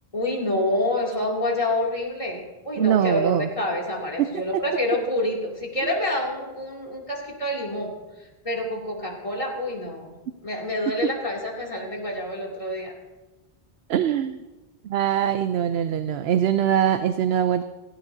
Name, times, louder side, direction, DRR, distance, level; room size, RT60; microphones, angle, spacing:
voice 1, 0.1-7.9 8.4-10.1 10.4-12.9, left 1 dB, 35° left, -2 dB, 2.7 m, -27 dB
voice 2, 2.8-3.5 4.2-4.3 4.5-4.6 13.9-14.4 14.8-17.6, right 9 dB, 80° right, 10 dB, 0.8 m, -22 dB
17.0 x 16.5 x 2.7 m, 1.2 s
omnidirectional pair, 1.0 m